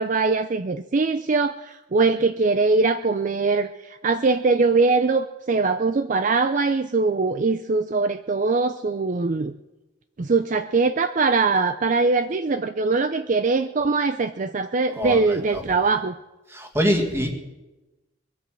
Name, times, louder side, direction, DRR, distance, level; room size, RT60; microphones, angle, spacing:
voice 1, 0.0-9.5 10.2-16.2, right 4 dB, 45° right, 10 dB, 0.5 m, -22 dB
voice 2, 15.0-15.6 16.5-17.3, equal, 15° right, 4 dB, 1.9 m, -24 dB
22.0 x 8.4 x 7.6 m, 1.1 s
head